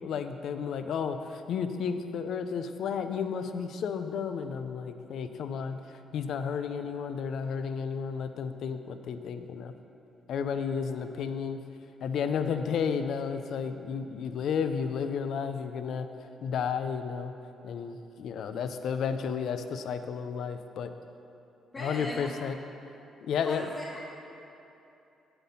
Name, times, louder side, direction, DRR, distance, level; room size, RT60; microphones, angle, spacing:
voice 1, 0.0-5.8 6.1-9.7 10.3-11.6 12.0-16.1 16.4-17.3 17.6-20.9 21.8-22.6 23.2-23.7, left 6 dB, 70° left, 9 dB, 0.6 m, -32 dB
voice 2, 21.7-22.3 23.3-24.0, left 1 dB, 30° left, -4 dB, 1.3 m, -39 dB
8.3 x 7.8 x 5.6 m, 2.8 s
supercardioid pair, 70°, 0 cm